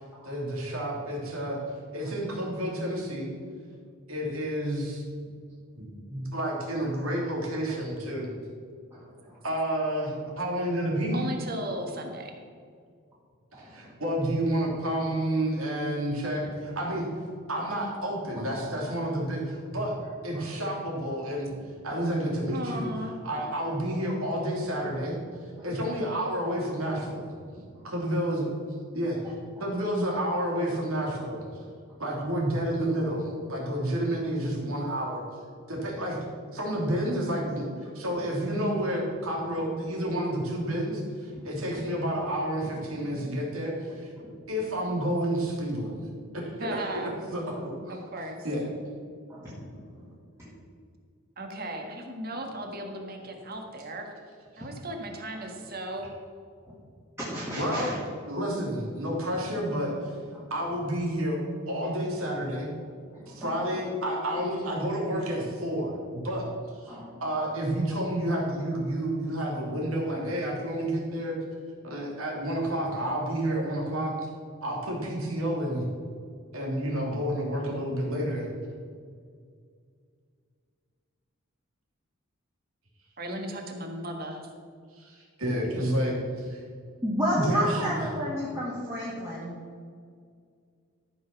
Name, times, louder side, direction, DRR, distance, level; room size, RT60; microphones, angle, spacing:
voice 1, 0.2-1.6 1.9-3.3 4.1-5.0 5.8-8.3 9.4-11.2 13.6-17.1 17.5-19.9 20.2-21.5 21.8-22.9 23.2-25.1 25.6-27.3 27.8-28.5 28.9-29.2 29.6-31.5 32.0-35.2 35.7-36.2 36.5-37.7 37.9-44.1 44.5-45.9 46.3-46.9 47.3-48.0 48.4-48.6 54.5-54.7 57.6-57.9 58.2-60.2 60.5-61.4 61.7-62.7 63.3-66.4 66.7-71.4 71.8-74.3 74.6-75.8 76.5-78.5 84.9-86.6 87.4-88.1, right 1 dB, 75° right, -2 dB, 3.1 m, -30 dB
voice 2, 8.9-9.4 13.5-13.9 20.3-20.5 25.6-25.7 27.7-27.9 41.3-41.4 48.1-48.2 49.3-49.8 50.4-50.5 57.2-57.9 63.1-63.5 66.9-67.1 87.0-89.6, equal, 10° right, -8 dB, 1.9 m, -32 dB
voice 3, 11.1-12.3 22.5-23.2 46.6-47.1 47.9-48.5 51.4-54.1 54.6-56.1 83.2-84.4, right 1 dB, 45° right, 2 dB, 1.6 m, -36 dB
13.5 x 6.1 x 5.9 m, 2.1 s
head